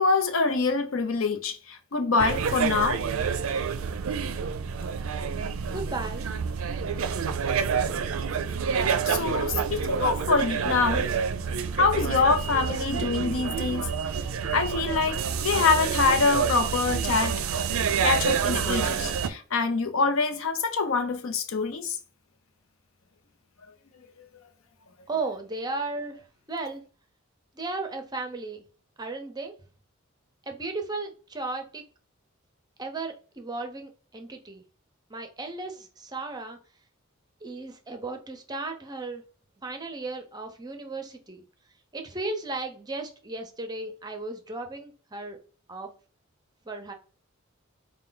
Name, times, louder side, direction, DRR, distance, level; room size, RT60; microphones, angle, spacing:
voice 1, 0.0-3.1 9.1-11.1 11.4-13.9 14.5-17.4 18.0-22.0, left 4 dB, 70° left, 0.6 m, -25 dB
sound 1, 2.2-19.3, right 6 dB, 80° right, 0.4 m, -28 dB
voice 2, 5.7-6.2 25.1-26.8 27.6-28.6 29.0-29.5 30.4-31.8 32.8-34.6 35.1-36.6 37.4-39.2 39.6-41.4 41.9-45.4 45.7-45.9 46.7-46.9, right 3 dB, 20° right, 0.6 m, -35 dB
4.4 x 2.2 x 3.8 m
head